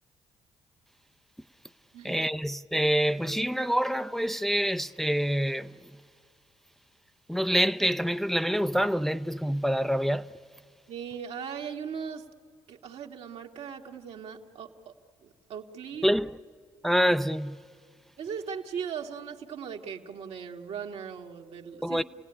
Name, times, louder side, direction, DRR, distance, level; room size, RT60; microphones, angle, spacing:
voice 1, 2.0-5.7 7.3-10.3 16.0-16.3 16.8-17.6 21.8-22.0, equal, 5° left, 0.5 m, -26 dB
voice 2, 10.9-12.2 12.7-14.9 15.2-16.1 18.2-22.0, right 7 dB, 70° right, 1.6 m, -38 dB
29.0 x 16.5 x 9.9 m
supercardioid pair, 55°, 11 cm